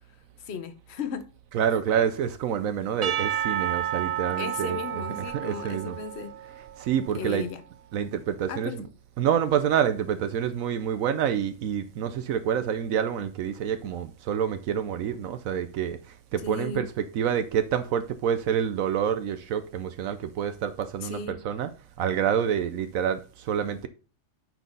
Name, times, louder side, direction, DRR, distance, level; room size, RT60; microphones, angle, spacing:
voice 1, 0.4-1.2 4.4-6.3 7.1-7.6 8.5-8.8 16.4-16.8 21.0-21.4, left 5 dB, 55° left, 1.1 m, -35 dB
voice 2, 1.5-6.0 6.5-7.5 7.9-8.9 9.2-21.7 22.0-23.9, right 8 dB, 80° right, 1.1 m, -27 dB
Percussion / Church bell, 3.0-7.2, right 10 dB, 60° right, 1.0 m, -31 dB
6.2 x 6.1 x 5.2 m
omnidirectional pair, 1.4 m